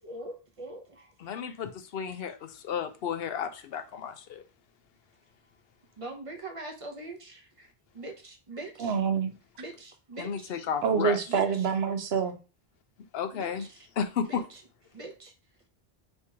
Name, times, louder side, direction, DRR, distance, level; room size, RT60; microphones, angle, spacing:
voice 1, 0.0-1.4 2.1-2.2 6.0-7.7 7.9-9.0 9.6-10.5 11.3-11.7 13.3-13.9 14.3-14.6 14.9-15.3, right 2 dB, 35° right, 0.8 m, -43 dB
voice 2, 1.2-4.4 10.2-11.2 13.1-13.7 14.0-14.4, left 7 dB, 75° left, 0.8 m, -33 dB
voice 3, 8.8-9.3 10.8-12.3, right 6 dB, 80° right, 0.9 m, -26 dB
3.4 x 2.9 x 4.6 m
omnidirectional pair, 1.0 m